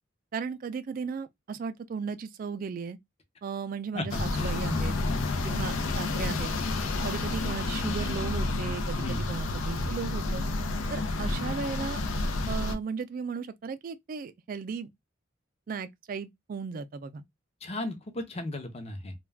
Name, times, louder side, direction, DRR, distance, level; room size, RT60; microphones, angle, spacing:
voice 1, 0.3-3.0 3.4-5.0 5.4-6.5 7.0-10.4 10.9-12.0 12.5-14.9 15.7-17.2, right 5 dB, 45° right, 0.3 m, -36 dB
voice 2, 3.9-4.6 5.1-5.4 9.0-9.3 17.6-19.1, left 1 dB, 30° left, 0.7 m, -36 dB
sound 1, 4.1-12.7, left 2 dB, 90° left, 0.5 m, -30 dB
2.3 x 2.2 x 3.3 m
head